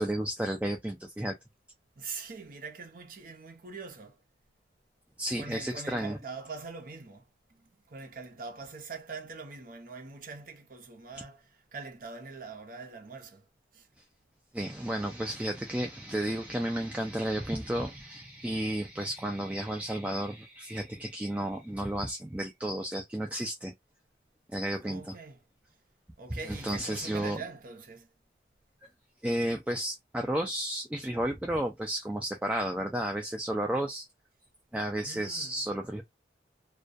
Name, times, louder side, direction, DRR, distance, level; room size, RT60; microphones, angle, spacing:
voice 1, 0.0-1.4 5.2-6.2 14.5-23.7 24.5-25.1 26.3-27.4 29.2-34.1 34.7-36.0, right 1 dB, 5° right, 0.3 m, -32 dB
voice 2, 2.0-4.2 5.4-7.2 7.5-7.6 7.9-13.4 13.7-13.9 24.8-25.4 26.2-28.1 35.0-35.6, right 4 dB, 50° right, 0.7 m, -43 dB
2.2 x 2.2 x 2.5 m
head